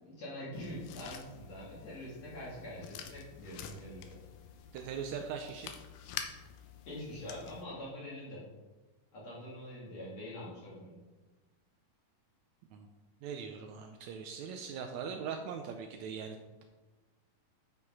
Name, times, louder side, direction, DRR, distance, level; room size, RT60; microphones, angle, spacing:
voice 1, 0.0-4.2 6.9-8.5 9.1-11.0, left 1 dB, 55° left, -7 dB, 3.2 m, -44 dB
sound 1, 0.5-7.7, left 8 dB, 80° left, 2.4 m, -48 dB
voice 2, 4.7-5.7 12.7-12.9 13.2-16.4, right 6 dB, 80° right, 4 dB, 1.6 m, -40 dB
10.0 x 5.5 x 4.7 m, 1.2 s
omnidirectional pair, 3.9 m